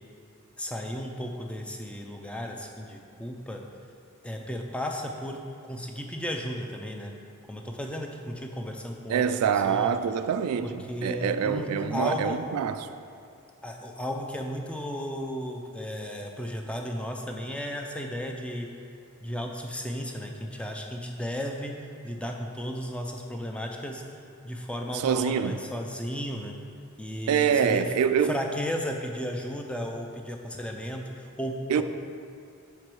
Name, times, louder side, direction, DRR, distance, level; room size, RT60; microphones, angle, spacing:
voice 1, 0.6-3.6 4.2-7.1 7.5-9.2 9.5-9.9 10.6-12.4 13.6-18.7 19.2-24.0 24.4-26.6 27.0-27.9 28.2-31.8, equal, 5° left, 0.4 m, -34 dB
voice 2, 9.1-12.9 24.9-25.6 27.3-28.3 31.7-31.8, right 7 dB, 85° right, 0.3 m, -25 dB
5.9 x 4.5 x 4.7 m
head